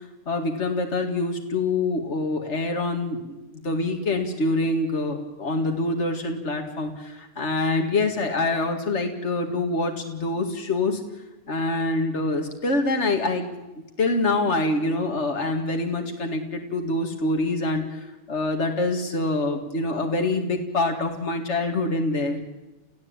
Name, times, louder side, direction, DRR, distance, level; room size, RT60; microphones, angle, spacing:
voice 1, 0.3-3.3 3.6-11.0 11.5-13.5 14.0-17.8 18.3-22.4, left 2 dB, 70° left, 4 dB, 2.5 m, -25 dB
30.0 x 16.0 x 8.9 m, 1.0 s
omnidirectional pair, 1.2 m